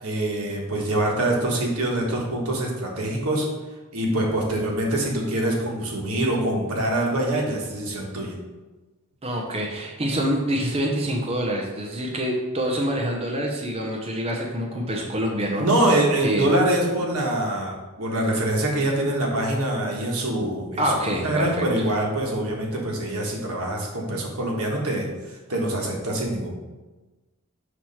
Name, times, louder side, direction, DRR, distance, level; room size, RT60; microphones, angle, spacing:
voice 1, 0.0-3.5 3.9-8.3 15.6-20.8 21.2-26.5, right 1 dB, 80° right, -1 dB, 1.3 m, -24 dB
voice 2, 9.2-15.7 16.2-16.5 20.8-21.6, equal, 30° right, 0 dB, 0.6 m, -26 dB
5.9 x 3.1 x 5.6 m, 1.2 s
head